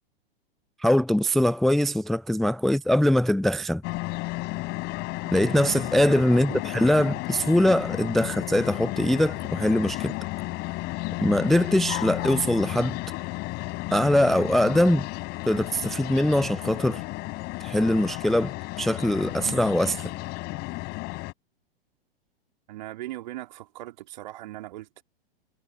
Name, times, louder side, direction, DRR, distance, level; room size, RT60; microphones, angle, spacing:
voice 1, 0.8-3.8 5.3-10.2 11.2-13.0 13.9-15.1 15.5-17.0 17.6-20.1, left 1 dB, ahead, 0.5 m, -22 dB
sound 1, 3.8-21.3, left 23 dB, 35° left, 4.7 m, -33 dB
voice 2, 6.3-6.6 22.7-25.0, right 15 dB, 45° right, 2.8 m, -39 dB
figure-of-eight pair, 105°, 30 cm